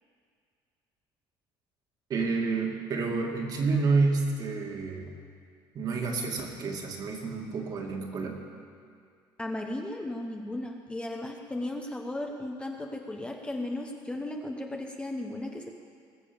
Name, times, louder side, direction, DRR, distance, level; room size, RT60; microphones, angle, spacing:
voice 1, 2.1-5.1 5.7-8.4, right 4 dB, 45° right, 1 dB, 2.3 m, -29 dB
voice 2, 9.4-15.7, left 1 dB, 10° left, 2 dB, 1.0 m, -35 dB
20.5 x 7.3 x 7.1 m, 2.2 s
cardioid pair, 120°, 10 cm